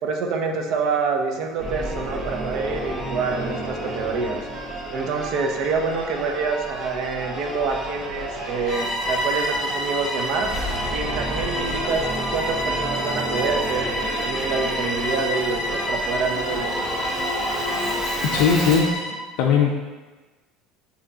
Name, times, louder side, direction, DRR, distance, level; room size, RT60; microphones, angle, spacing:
voice 1, 0.0-4.4 4.9-12.1 12.3-17.0, right 4 dB, 60° right, 3 dB, 0.6 m, -27 dB
Singing / Musical instrument, 1.6-19.0, right 1 dB, 35° right, 0.8 m, -30 dB
Bowed string instrument, 8.6-19.2, equal, 40° left, 0.7 m, -29 dB
voice 2, 18.2-19.0 19.4-20.0, left 6 dB, 75° left, -1 dB, 0.4 m, -19 dB
6.0 x 2.8 x 2.8 m, 1.3 s
supercardioid pair, 120°, 0 cm